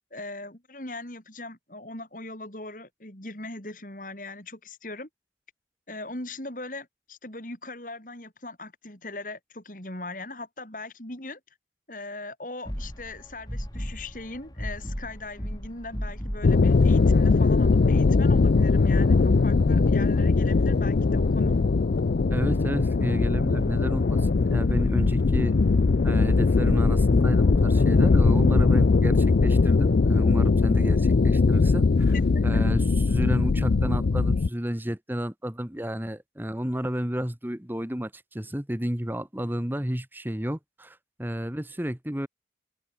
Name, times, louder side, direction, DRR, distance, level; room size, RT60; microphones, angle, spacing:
voice 1, 0.1-5.1 5.9-11.4 11.9-21.6 32.1-32.7, left 2 dB, 50° left, 4.5 m, -39 dB
sound 1, 12.6-30.1, equal, 20° left, 7.9 m, -35 dB
sound 2, 16.4-34.5, left 4 dB, 70° left, 0.5 m, -21 dB
voice 2, 22.3-25.5 26.0-32.1 32.4-42.3, equal, 10° right, 1.4 m, -31 dB
head